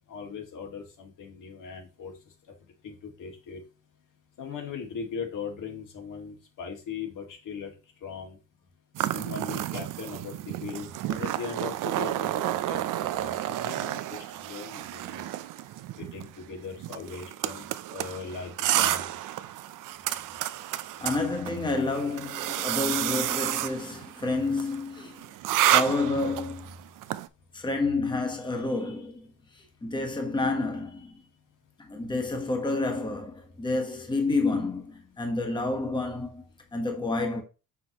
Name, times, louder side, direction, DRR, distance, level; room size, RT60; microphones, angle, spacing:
voice 1, 0.1-2.1 2.8-3.6 4.4-7.7 8.0-8.4 9.1-15.3 16.0-17.7 17.9-19.1, left 6 dB, 70° left, 2.1 m, -39 dB
sound 1, 8.9-27.3, right 13 dB, 70° right, 0.6 m, -31 dB
voice 2, 21.0-25.2 25.6-26.7 27.5-29.3 29.5-31.2 31.8-36.4 36.7-37.4, left 3 dB, 15° left, 1.2 m, -29 dB
6.8 x 5.9 x 3.0 m
cardioid pair, 170°, 33 cm